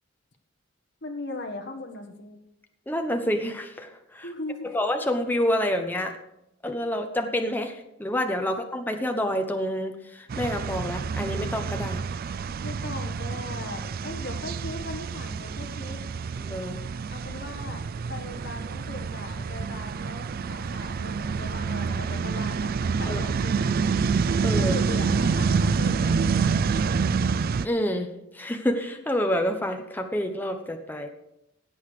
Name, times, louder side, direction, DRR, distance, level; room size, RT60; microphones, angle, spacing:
voice 1, 1.0-2.4 4.2-4.7 12.6-16.0 17.1-17.8 18.1-23.7 24.6-26.2, left 2 dB, 55° left, 3 dB, 1.5 m, -38 dB
voice 2, 2.9-4.2 4.6-6.1 6.6-12.0 16.4-16.8 23.1-23.2 24.4-24.8 27.6-28.1 28.3-31.1, equal, 10° left, 5 dB, 0.9 m, -28 dB
sound 1, 10.3-27.7, right 5 dB, 45° right, 0.3 m, -27 dB
17.0 x 8.0 x 5.0 m, 0.85 s
head